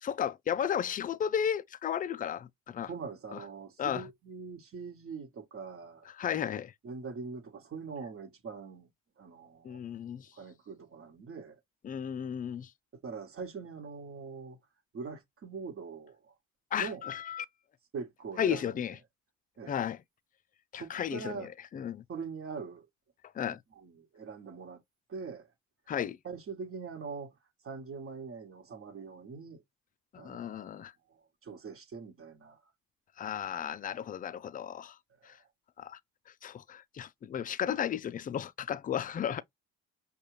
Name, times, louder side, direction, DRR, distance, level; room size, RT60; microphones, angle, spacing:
voice 1, 0.0-2.9 3.8-4.0 6.2-6.7 9.6-10.3 11.8-12.7 16.7-17.5 18.4-18.9 19.7-20.0 20.7-22.0 23.3-23.6 25.9-26.2 30.1-30.9 33.2-35.0 35.2-35.4 35.8-36.0 36.4-39.4, left 9 dB, 30° left, 0.4 m, -34 dB
voice 2, 2.9-6.1 6.8-8.9 9.2-9.8 10.3-11.6 12.9-14.6 14.9-16.3 16.8-17.1 17.9-18.8 19.6-19.8 20.7-21.5 22.1-22.9 23.7-24.8 25.1-25.5 26.2-27.4 27.6-29.6 30.1-30.7 31.1-32.6 35.2-35.5, right 5 dB, 45° right, 1.3 m, -43 dB
5.3 x 2.4 x 3.1 m
supercardioid pair, 75°, 31 cm